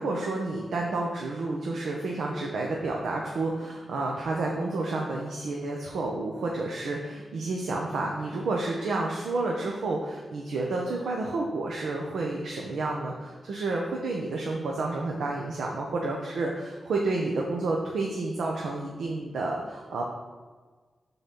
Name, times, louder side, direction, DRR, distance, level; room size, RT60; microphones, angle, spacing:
voice 1, 0.0-20.0, right 2 dB, 90° right, -1 dB, 0.7 m, -30 dB
5.8 x 3.9 x 5.3 m, 1.4 s
cardioid pair, 80°, 0 cm